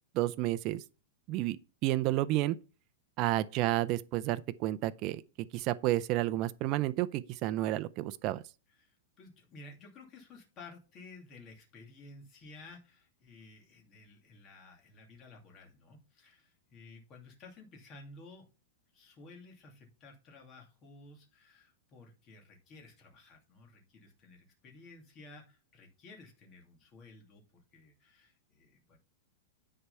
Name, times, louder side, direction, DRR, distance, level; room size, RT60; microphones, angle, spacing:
voice 1, 0.1-0.8 1.3-1.6 1.8-2.6 3.2-8.4, right 15 dB, 30° right, 0.5 m, -31 dB
voice 2, 8.7-18.5 18.9-29.0, left 3 dB, 25° left, 2.6 m, -54 dB
10.0 x 4.7 x 5.6 m
supercardioid pair, 170°, 0 cm